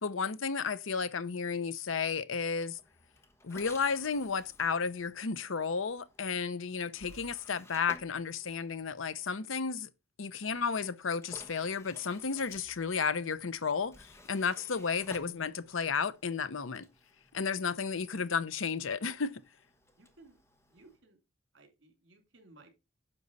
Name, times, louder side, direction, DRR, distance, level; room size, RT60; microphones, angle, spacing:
voice 1, 0.0-2.8 3.4-9.9 10.2-13.9 14.2-16.9 17.3-19.4, left 5 dB, 80° left, 0.8 m, -33 dB
sound 1, 2.5-9.4 10.5-21.0, left 1 dB, 15° left, 1.2 m, -56 dB
voice 2, 20.0-20.4 20.7-21.2 21.5-22.7, right 2 dB, 65° right, 3.1 m, -59 dB
10.0 x 6.7 x 4.1 m
head